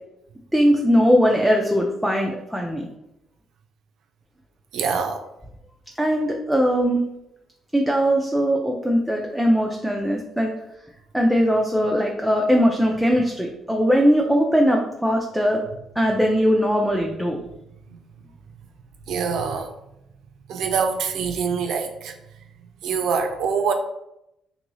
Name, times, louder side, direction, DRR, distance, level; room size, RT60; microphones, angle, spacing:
voice 1, 0.5-2.9 6.0-7.0 7.7-10.5 11.1-15.6 16.0-17.4, equal, ahead, 0.4 m, -20 dB
voice 2, 4.7-5.3 17.9-18.0 19.1-19.7 20.5-22.2 22.8-23.7, right 6 dB, 80° right, 0.4 m, -25 dB
2.7 x 2.6 x 3.0 m
cardioid pair, 90°, 0 cm